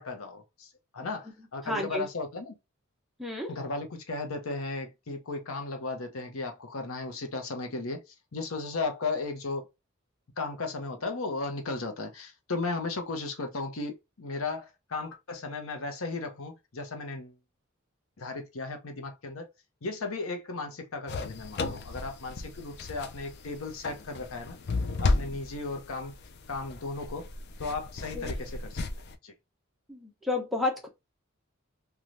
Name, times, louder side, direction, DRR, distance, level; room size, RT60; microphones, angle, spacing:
voice 1, 0.0-2.6 3.5-9.7 10.4-17.4 18.2-19.5 19.8-24.6 25.0-26.1 26.5-27.3 27.6-28.8 29.2-29.3, left 3 dB, 90° left, 0.8 m, -35 dB
voice 2, 1.6-2.0 3.2-3.5 28.1-28.3 29.9-30.9, left 2 dB, ahead, 0.7 m, -31 dB
sound 1, 21.1-29.2, left 3 dB, 55° left, 0.4 m, -34 dB
3.1 x 2.3 x 2.5 m
head